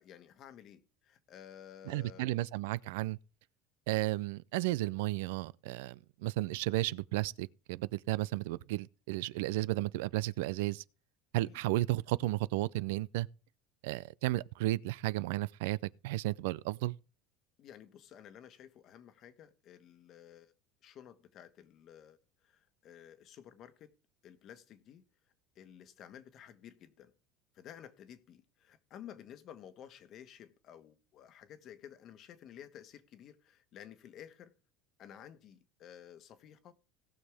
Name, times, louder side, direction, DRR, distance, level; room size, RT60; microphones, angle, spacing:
voice 1, 0.0-2.4 11.4-11.6 17.6-20.5 20.8-23.9 24.2-25.0 25.5-27.1 27.5-34.5 35.0-36.7, left 10 dB, 45° left, 1.3 m, -53 dB
voice 2, 1.9-3.2 3.9-10.8 11.3-13.3 13.8-17.0, right 18 dB, 90° right, 0.4 m, -33 dB
18.5 x 6.4 x 3.5 m
cardioid pair, 140°, 0 cm